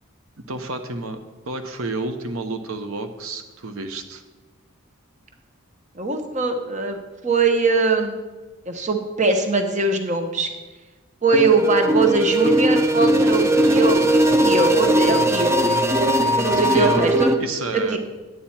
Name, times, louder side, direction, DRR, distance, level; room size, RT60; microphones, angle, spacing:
voice 1, 0.5-1.2 1.5-4.2 16.5-17.1 17.4-18.0, right 2 dB, 75° right, 7 dB, 0.9 m, -30 dB
voice 2, 6.0-7.0 7.2-8.2 8.7-10.5 11.2-14.0 14.4-15.5 15.9-16.0 16.3-17.3 17.7-18.0, right 3 dB, 35° right, 5 dB, 0.9 m, -21 dB
sound 1, 11.3-17.3, right 1 dB, 15° right, 0.5 m, -19 dB
11.0 x 8.9 x 4.3 m, 1.2 s
head